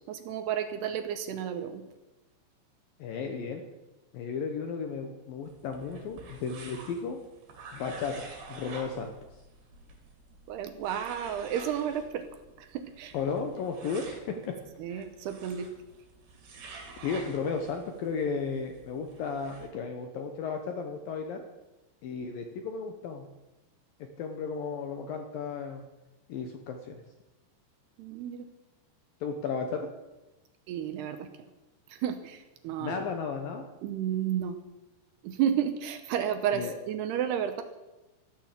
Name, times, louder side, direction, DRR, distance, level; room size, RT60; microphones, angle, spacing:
voice 1, 0.1-1.8 10.5-12.3 12.6-13.1 14.8-15.7 28.0-28.4 30.7-31.3 31.9-33.0 33.8-34.6 35.2-37.6, right 9 dB, 75° right, 8 dB, 2.7 m, -32 dB
voice 2, 3.0-3.6 4.1-7.2 7.7-9.1 13.1-14.6 14.9-15.0 17.0-21.4 22.0-23.2 24.2-25.8 26.3-27.0 29.2-29.9 32.8-33.6 36.5-36.7, left 5 dB, 70° left, 5 dB, 2.2 m, -34 dB
sound 1, 5.4-19.7, right 3 dB, 60° right, 4.5 m, -49 dB
14.0 x 12.5 x 7.5 m, 1.0 s
omnidirectional pair, 5.3 m